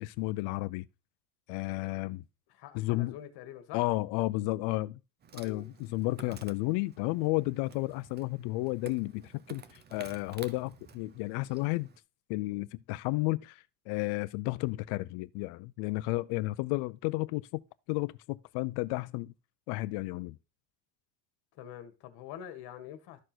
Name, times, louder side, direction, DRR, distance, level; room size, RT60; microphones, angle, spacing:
voice 1, 0.0-0.9 1.5-2.2 2.7-3.2 3.7-5.0 5.3-11.9 12.3-17.6 17.9-19.3 19.7-20.4, left 20 dB, 70° left, 0.6 m, -32 dB
voice 2, 2.5-3.8 5.4-5.7 21.5-23.2, left 10 dB, 55° left, 1.9 m, -45 dB
Insect, 5.2-12.0, right 6 dB, 25° right, 0.7 m, -52 dB
12.5 x 4.5 x 6.1 m
cardioid pair, 165°, 44 cm